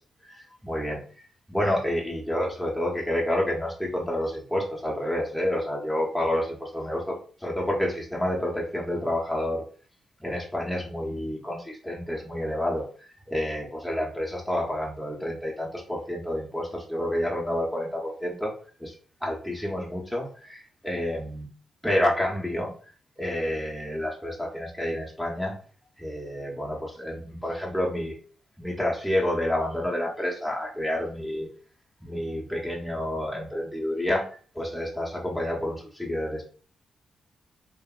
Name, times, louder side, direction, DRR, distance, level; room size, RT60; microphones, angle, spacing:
voice 1, 0.3-1.0 1.5-7.1 7.4-9.6 10.2-12.8 13.3-18.5 18.8-18.9 19.2-21.5 21.8-22.7 23.2-25.5 26.0-28.2 28.6-31.5 32.0-34.2 34.5-36.4, left 1 dB, ahead, -3 dB, 0.7 m, -29 dB
2.7 x 2.5 x 2.3 m, 0.42 s
cardioid pair, 75°, 0 cm